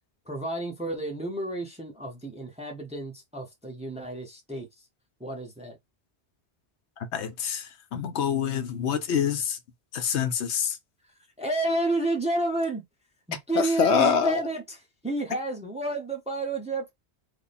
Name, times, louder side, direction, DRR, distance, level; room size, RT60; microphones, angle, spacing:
voice 1, 0.3-4.7 5.2-5.8 11.4-12.8 13.3-14.8 15.0-16.9, right 2 dB, 5° right, 0.6 m, -30 dB
voice 2, 7.0-7.7 7.9-9.6 9.9-10.8 13.6-14.4, left 7 dB, 80° left, 1.0 m, -25 dB
3.4 x 2.1 x 4.0 m
omnidirectional pair, 1.1 m